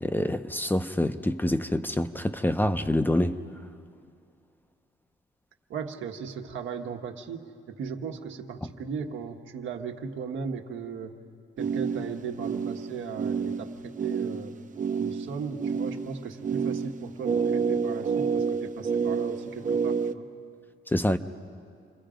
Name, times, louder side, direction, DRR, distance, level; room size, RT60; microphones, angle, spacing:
voice 1, 0.0-3.4 20.9-21.2, left 1 dB, 10° left, 0.7 m, -26 dB
voice 2, 5.7-11.2 11.6-14.5 15.0-20.3, right 6 dB, 80° right, 1.5 m, -37 dB
sound 1, 11.6-20.1, right 6 dB, 40° right, 0.8 m, -29 dB
28.5 x 20.5 x 5.1 m
cardioid pair, 90°, 20 cm